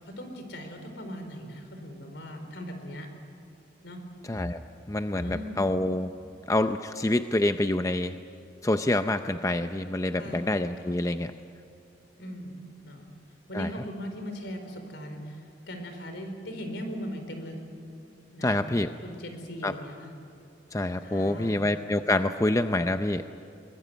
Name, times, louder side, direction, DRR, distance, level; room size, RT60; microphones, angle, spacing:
voice 1, 0.0-3.1 3.8-4.0 5.2-5.7 10.2-10.5 10.9-11.0 12.2-13.1 13.5-17.6 18.3-18.7 19.0-20.1 21.0-21.6, equal, 70° left, 6 dB, 4.5 m, -39 dB
voice 2, 4.3-4.6 4.9-6.1 6.5-8.2 8.6-11.3 13.5-13.7 18.4-18.9 19.6-19.7 20.7-23.3, left 1 dB, 15° left, 8 dB, 0.6 m, -26 dB
24.0 x 22.0 x 9.5 m, 2.6 s
head